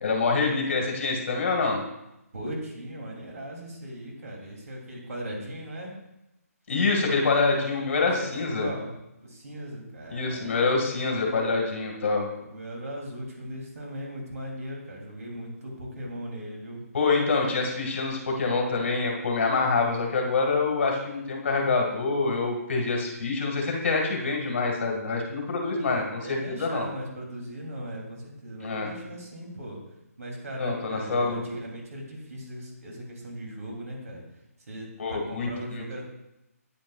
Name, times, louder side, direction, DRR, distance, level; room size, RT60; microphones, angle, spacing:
voice 1, 0.0-1.8 6.7-8.7 10.1-12.3 16.9-26.9 28.6-28.9 30.6-31.4 35.0-35.8, left 4 dB, 50° left, 0 dB, 2.0 m, -26 dB
voice 2, 2.3-5.9 8.2-8.9 9.2-10.5 10.9-11.5 12.4-16.8 25.7-29.8 30.2-34.2 34.7-36.0, right 1 dB, 70° right, -1 dB, 2.9 m, -38 dB
9.2 x 8.6 x 2.4 m, 0.91 s
hypercardioid pair, 165°, 9 cm